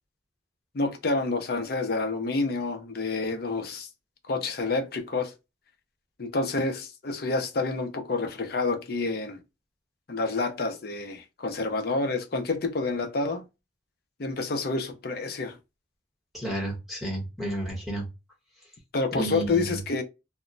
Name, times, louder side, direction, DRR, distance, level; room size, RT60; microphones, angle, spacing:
voice 1, 0.7-3.9 4.3-5.3 6.2-9.4 10.1-13.4 14.2-15.6 18.9-20.0, left 3 dB, 55° left, 0.5 m, -28 dB
voice 2, 16.3-18.1 19.1-19.8, right 1 dB, ahead, 1.0 m, -31 dB
2.1 x 2.1 x 3.7 m
head